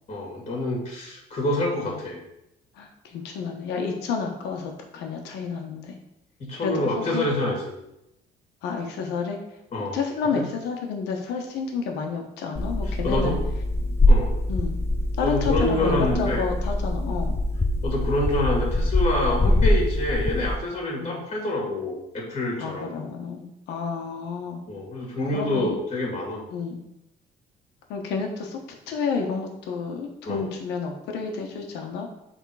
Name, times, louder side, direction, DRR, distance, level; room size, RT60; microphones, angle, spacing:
voice 1, 0.1-2.2 6.4-7.8 9.7-10.0 10.3-10.4 13.0-13.4 13.8-14.3 15.2-16.4 17.8-22.9 24.7-26.4 30.3-30.4, left 1 dB, 40° left, -1 dB, 2.0 m, -27 dB
voice 2, 2.7-6.0 6.6-6.8 7.1-7.3 8.6-9.4 9.9-13.4 14.5-14.8 15.2-17.4 19.5-19.7 21.0-21.2 22.6-24.6 25.3-25.8 26.5-26.8 27.9-28.6 28.9-32.1, left 5 dB, 85° left, 3 dB, 1.2 m, -30 dB
sound 1, 12.6-20.6, left 1 dB, 15° left, 0.5 m, -23 dB
6.9 x 3.7 x 4.8 m, 0.86 s
cardioid pair, 110°, 17 cm